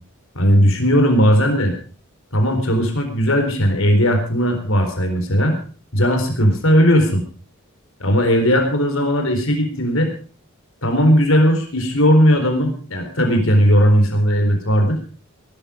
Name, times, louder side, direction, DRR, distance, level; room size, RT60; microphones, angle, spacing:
voice 1, 0.3-1.7 2.3-5.6 5.9-7.2 8.0-10.1 10.8-15.0, equal, 65° left, 5 dB, 4.1 m, -17 dB
19.0 x 12.0 x 5.2 m, 0.38 s
head